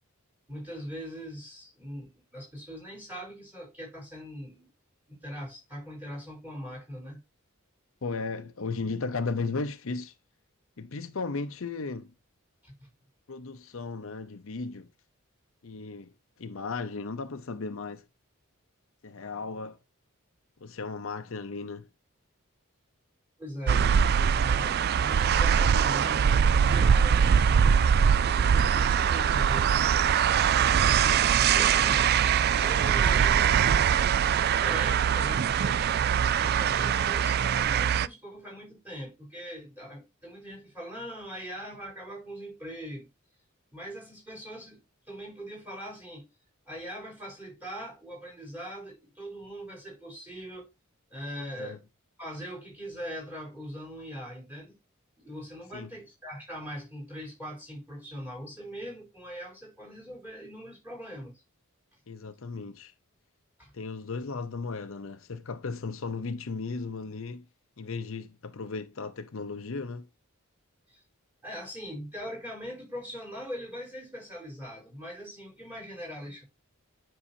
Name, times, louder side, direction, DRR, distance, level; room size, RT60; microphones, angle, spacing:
voice 1, 0.5-4.7 5.1-7.2 12.6-12.9 23.4-23.9 24.3-27.8 28.4-30.0 31.5-32.1 32.5-33.5 34.4-36.0 36.4-43.1 43.7-46.3 46.7-50.7 51.1-51.8 52.2-54.8 55.2-61.4 63.6-63.7 70.9-71.0 71.4-76.4, equal, 10° right, 4.4 m, -41 dB
voice 2, 8.0-10.1 10.8-12.1 13.3-14.9 15.6-18.0 19.0-19.8 20.6-21.9 31.4-31.9 51.4-51.8 55.7-55.9 62.1-62.9 63.7-67.5 67.8-70.1, left 4 dB, 65° left, 0.6 m, -35 dB
sound 1, 23.7-38.1, right 7 dB, 45° right, 0.3 m, -22 dB
9.9 x 5.5 x 2.7 m
head